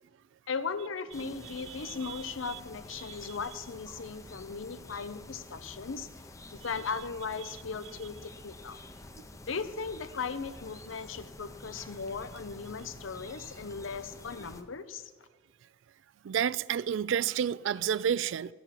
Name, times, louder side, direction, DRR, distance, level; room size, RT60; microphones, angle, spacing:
voice 1, 0.5-6.1 6.5-8.8 9.5-15.1, left 5 dB, 85° left, 0.7 m, -37 dB
sound 1, 1.1-14.6, left 2 dB, 15° left, 0.6 m, -49 dB
voice 2, 16.2-18.5, right 8 dB, 70° right, 0.3 m, -29 dB
13.0 x 7.0 x 7.5 m
head